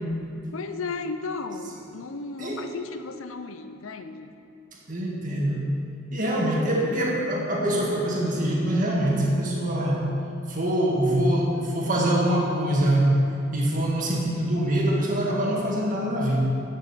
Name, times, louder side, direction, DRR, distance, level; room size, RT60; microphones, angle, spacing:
voice 1, 0.5-4.3, left 4 dB, 80° left, 9 dB, 0.6 m, -34 dB
voice 2, 4.9-5.7 6.1-10.1 10.5-13.2 13.5-16.4, right 1 dB, 40° right, -3 dB, 1.9 m, -24 dB
10.0 x 6.7 x 6.8 m, 2.6 s
head